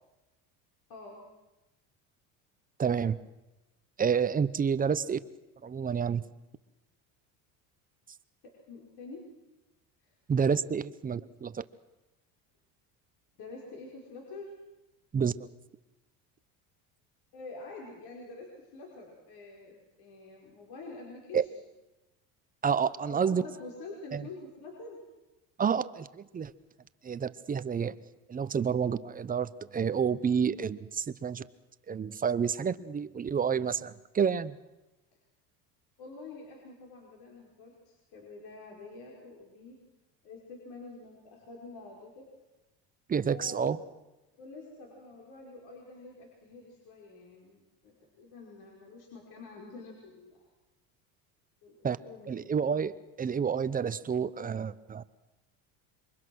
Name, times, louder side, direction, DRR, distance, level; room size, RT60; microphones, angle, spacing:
voice 1, 0.9-1.2 8.4-9.3 10.0-10.2 13.4-14.5 17.3-21.5 23.1-25.0 36.0-39.8 40.2-42.3 43.2-43.8 44.4-50.5 51.6-52.4, left 3 dB, 65° left, -2 dB, 5.4 m, -47 dB
voice 2, 2.8-3.2 4.0-5.2 5.6-6.3 10.3-11.6 15.1-15.5 21.3-21.4 22.6-23.5 24.1-24.2 25.6-26.5 27.0-27.9 28.3-31.4 31.9-34.6 43.1-43.8 51.8-52.0 52.3-55.0, right 7 dB, 20° right, 15 dB, 0.7 m, -29 dB
27.0 x 23.5 x 6.3 m, 1.0 s
cardioid pair, 125°, 41 cm